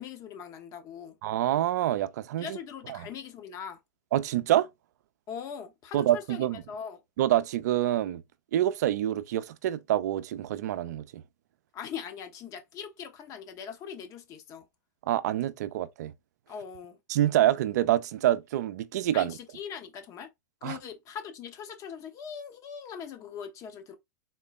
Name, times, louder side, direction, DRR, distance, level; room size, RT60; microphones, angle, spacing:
voice 1, 0.0-1.2 2.4-3.8 5.3-7.0 11.7-14.6 16.5-17.0 19.1-20.3 20.6-24.0, left 7 dB, 35° left, 1.0 m, -41 dB
voice 2, 1.2-2.6 2.9-3.1 4.1-4.7 5.9-6.6 7.2-8.2 8.5-11.2 15.0-16.1 17.1-19.4 20.6-20.8, right 12 dB, 65° right, 0.5 m, -26 dB
3.8 x 2.1 x 4.1 m
hypercardioid pair, 120°, 10 cm